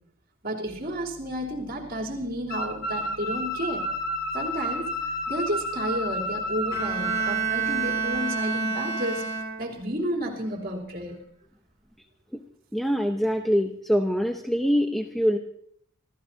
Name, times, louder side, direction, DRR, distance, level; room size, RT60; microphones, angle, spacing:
voice 1, 0.4-3.8 4.3-4.9 5.3-9.3 9.6-11.2, right 1 dB, 45° right, -2 dB, 3.3 m, -31 dB
sound 1, 0.7-8.1, left 2 dB, 25° left, 4.3 m, -51 dB
sound 2, 2.5-7.3, left 1 dB, 45° left, 1.4 m, -31 dB
Bowed string instrument, 6.7-9.9, right 5 dB, 15° right, 4.6 m, -28 dB
voice 2, 12.7-15.4, equal, ahead, 3 dB, 0.7 m, -24 dB
28.0 x 14.5 x 2.8 m, 0.65 s
head